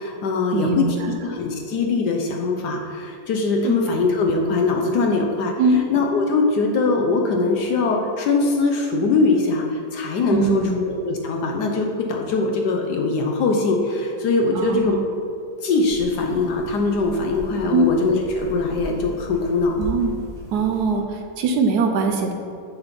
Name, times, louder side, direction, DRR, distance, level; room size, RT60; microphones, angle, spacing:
voice 1, 0.0-15.0 15.6-19.8, left 3 dB, 70° left, 1 dB, 1.2 m, -22 dB
voice 2, 0.5-1.1 3.6-3.9 5.6-5.8 10.3-10.8 14.5-15.0 17.7-17.9 19.8-20.2 20.5-22.3, right 4 dB, 70° right, 4 dB, 1.0 m, -22 dB
sound 1, 15.8-21.0, left 1 dB, 30° right, 1.8 m, -38 dB
6.9 x 4.2 x 5.1 m, 2.5 s
omnidirectional pair, 1.9 m